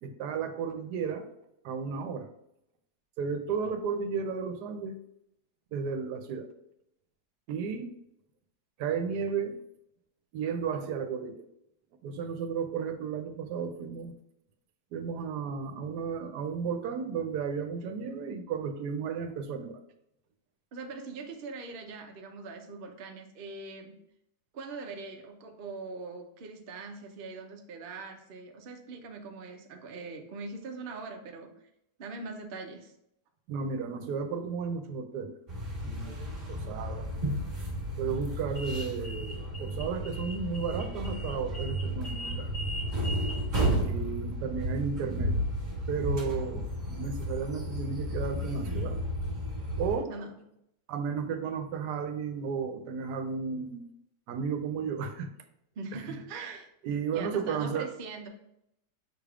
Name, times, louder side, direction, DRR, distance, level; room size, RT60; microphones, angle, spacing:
voice 1, 0.0-1.3 1.6-2.3 3.2-5.0 5.7-6.5 7.5-7.9 8.8-9.6 10.3-11.5 12.0-14.1 14.9-19.8 33.5-35.4 35.8-36.2 36.5-37.1 38.0-42.5 43.8-45.4 45.9-49.0 49.8-50.1 50.9-53.9 54.3-55.3 55.9-56.0 56.8-57.9, right 6 dB, 80° right, 7 dB, 1.1 m, -33 dB
voice 2, 20.7-23.9 24.5-31.5 32.0-32.9 50.1-50.4 55.8-56.7 57.1-58.3, right 3 dB, 65° right, 3 dB, 0.5 m, -42 dB
sound 1, 35.5-50.0, equal, 35° right, 1.4 m, -33 dB
6.0 x 3.3 x 2.4 m, 0.79 s
omnidirectional pair, 1.7 m